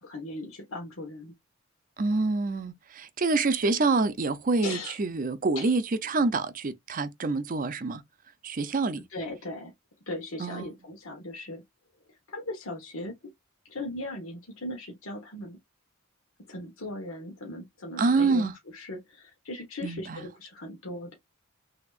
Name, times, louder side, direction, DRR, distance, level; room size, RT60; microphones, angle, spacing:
voice 1, 0.0-1.3 4.6-5.0 5.5-5.7 9.1-9.7 10.1-11.6 12.3-13.2 13.6-15.6 16.5-21.1, left 1 dB, 80° left, 1.3 m, -38 dB
voice 2, 2.0-8.0 8.4-9.0 10.4-10.7 18.0-18.5 19.8-20.2, right 3 dB, 40° right, 0.6 m, -26 dB
6.0 x 2.8 x 2.5 m
head